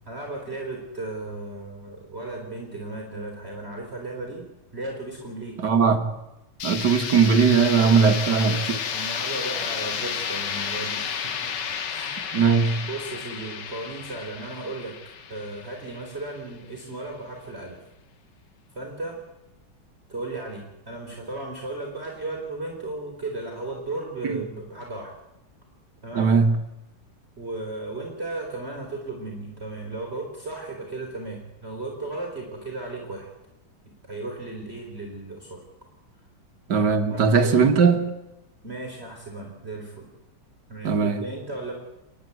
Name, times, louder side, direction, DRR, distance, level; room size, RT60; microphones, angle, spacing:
voice 1, 0.1-4.4 4.7-5.6 8.0-12.2 12.8-14.9 15.3-17.8 18.7-19.2 20.1-25.1 26.0-26.3 27.4-33.3 34.0-35.6 37.1-37.5 38.6-40.1 40.7-41.7, right 2 dB, 30° right, 3.5 m, -35 dB
voice 2, 5.6-6.1 6.6-8.8 12.3-12.9 24.2-24.4 26.2-26.6 36.7-38.1 40.8-41.2, right 5 dB, 55° right, 2.0 m, -19 dB
sound 1, 6.6-16.4, left 7 dB, 60° left, 1.7 m, -32 dB
30.0 x 10.0 x 9.5 m
omnidirectional pair, 2.3 m